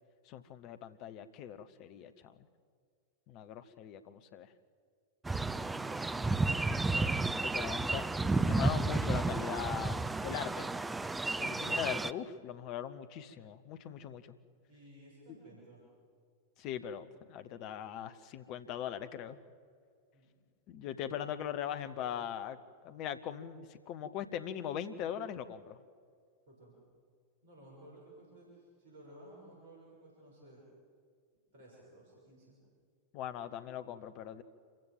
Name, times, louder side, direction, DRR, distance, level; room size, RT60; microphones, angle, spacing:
voice 1, 0.3-2.4 3.3-4.5 6.3-10.7 11.4-14.3 16.6-19.4 20.7-25.8 33.1-34.4, left 10 dB, 40° left, 11 dB, 1.1 m, -41 dB
sound 1, 5.2-12.1, right 3 dB, 10° right, 0.5 m, -32 dB
voice 2, 5.4-5.9 11.4-11.7 14.7-15.8 20.1-20.5 26.5-26.8 27.4-30.6 31.5-32.6, right 1 dB, 55° right, -3 dB, 6.6 m, -56 dB
27.0 x 15.5 x 7.3 m, 2.1 s
figure-of-eight pair, 90°, 0 cm